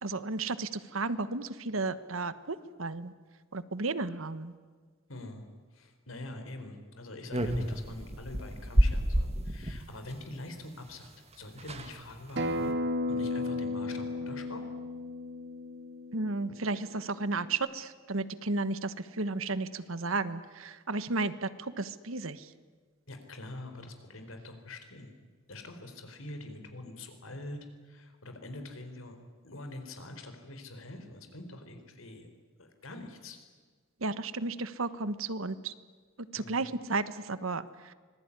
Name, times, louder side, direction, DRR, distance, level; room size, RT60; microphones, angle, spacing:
voice 1, 0.0-3.1 3.5-4.5 16.1-22.5 34.0-35.7 36.3-37.9, right 3 dB, 80° right, 14 dB, 1.3 m, -33 dB
voice 2, 5.1-5.5 5.7-11.1 11.4-12.7 13.1-14.6 23.1-25.1 25.5-27.6 27.8-29.2 29.4-32.3 32.6-33.4 36.4-36.6, left 2 dB, 80° left, 6 dB, 4.3 m, -44 dB
sound 1, 7.3-9.8 11.1-11.2 11.3-11.4 11.6-12.0 12.4-12.7, equal, 30° right, 1.9 m, -29 dB
Acoustic guitar, 12.4-17.6, left 2 dB, 60° right, 2.6 m, -34 dB
25.5 x 20.5 x 9.9 m, 1.5 s
head